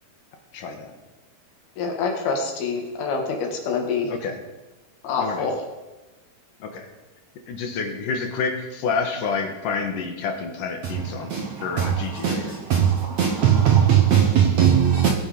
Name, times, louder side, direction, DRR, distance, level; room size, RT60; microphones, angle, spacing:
voice 1, 0.5-0.9 4.1-4.4 5.2-5.5 6.6-6.9 7.5-11.3 11.6-12.5, left 5 dB, 65° left, 2.8 m, -28 dB
voice 2, 1.8-4.1 5.0-5.6, left 5 dB, 85° left, 3.9 m, -26 dB
voice 3, 10.8-15.1, right 9 dB, 70° right, 1.7 m, -20 dB
20.5 x 7.4 x 5.2 m
omnidirectional pair, 4.3 m